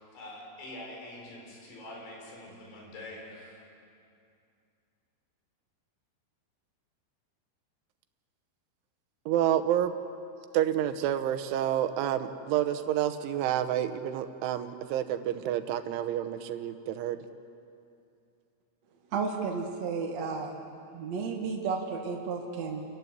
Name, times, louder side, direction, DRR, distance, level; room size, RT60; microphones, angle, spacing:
voice 1, 0.0-3.6, left 1 dB, 75° left, -2 dB, 7.0 m, -45 dB
voice 2, 9.3-10.0 10.5-17.2, right 11 dB, 90° right, 10 dB, 3.4 m, -29 dB
voice 3, 19.1-20.5 20.9-22.8, right 5 dB, 55° right, 1 dB, 1.9 m, -32 dB
29.0 x 15.0 x 9.6 m, 2.5 s
omnidirectional pair, 5.4 m